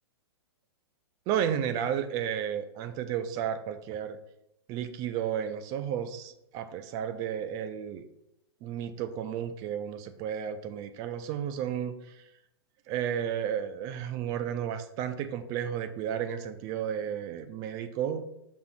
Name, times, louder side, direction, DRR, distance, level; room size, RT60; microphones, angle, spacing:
voice 1, 1.3-4.2 4.7-8.1 8.6-12.2 12.9-18.3, right 9 dB, 25° right, 9 dB, 0.5 m, -33 dB
6.2 x 3.3 x 5.8 m, 0.81 s
figure-of-eight pair, 110°, 14 cm